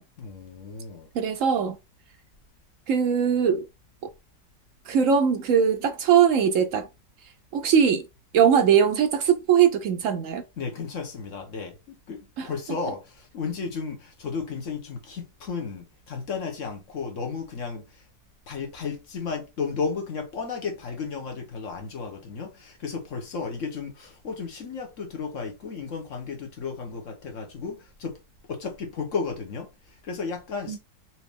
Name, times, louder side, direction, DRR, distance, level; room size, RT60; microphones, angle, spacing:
voice 1, 0.2-1.1 10.6-12.2 12.4-18.0 18.5-28.2 28.5-30.8, left 5 dB, 50° left, 1.2 m, -33 dB
voice 2, 1.1-1.8 2.9-3.6 4.0-4.1 4.9-6.9 7.5-8.0 8.3-10.4 12.4-12.5 30.7-30.8, right 7 dB, 75° right, 0.7 m, -21 dB
4.3 x 2.8 x 3.4 m
omnidirectional pair, 1.9 m